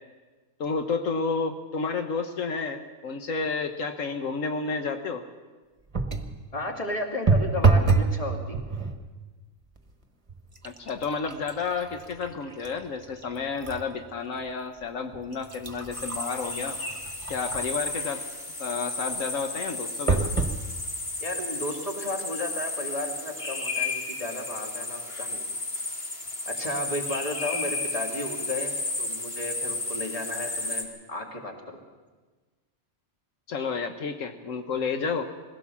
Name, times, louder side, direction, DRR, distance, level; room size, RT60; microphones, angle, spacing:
voice 1, 0.6-5.2 10.6-16.8 17.3-18.2 18.6-20.3 33.5-35.2, left 4 dB, 75° left, 6 dB, 1.4 m, -31 dB
sound 1, 5.9-6.4 7.3-8.2 8.5-9.0 9.8-9.9 10.3-13.9 14.4-14.5 15.1-17.9 20.1-20.6 21.3-21.4 21.6-21.7, right 4 dB, 25° right, 1.3 m, -27 dB
voice 2, 6.5-8.6 21.2-25.4 26.4-31.8, left 1 dB, 25° left, 1 dB, 2.7 m, -34 dB
sound 2, 15.9-30.8, left 2 dB, 45° left, 2.8 m, -33 dB
22.0 x 17.0 x 7.1 m, 1.3 s
omnidirectional pair, 1.4 m